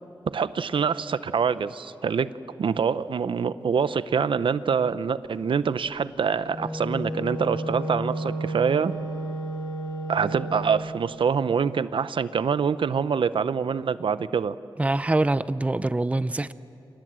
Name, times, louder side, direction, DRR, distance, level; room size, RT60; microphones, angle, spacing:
voice 1, 0.3-2.3 2.6-8.9 10.1-14.5, right 6 dB, 80° right, 0.7 m, -25 dB
Wind instrument woodwind instrument, 6.3-10.8, right 1 dB, 55° left, 6.9 m, -32 dB
voice 2, 14.8-16.5, right 2 dB, 15° right, 0.6 m, -24 dB
29.0 x 27.0 x 7.6 m
wide cardioid pair, 115°, 9 cm